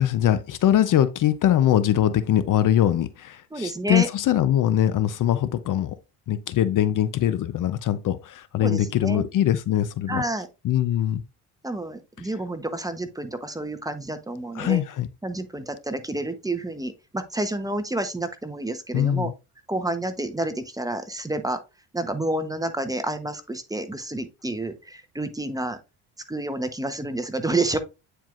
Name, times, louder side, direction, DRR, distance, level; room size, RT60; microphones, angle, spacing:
voice 1, 0.0-5.9 6.3-10.2 10.6-11.2 14.5-15.1 18.9-19.3, left 11 dB, 50° left, 0.7 m, -22 dB
voice 2, 3.5-4.1 8.6-9.3 10.1-10.5 11.6-14.8 15.2-19.3 19.7-21.6 21.9-25.8 26.3-27.8, right 2 dB, 10° right, 0.9 m, -29 dB
9.1 x 4.6 x 2.5 m
cardioid pair, 95°, 40 cm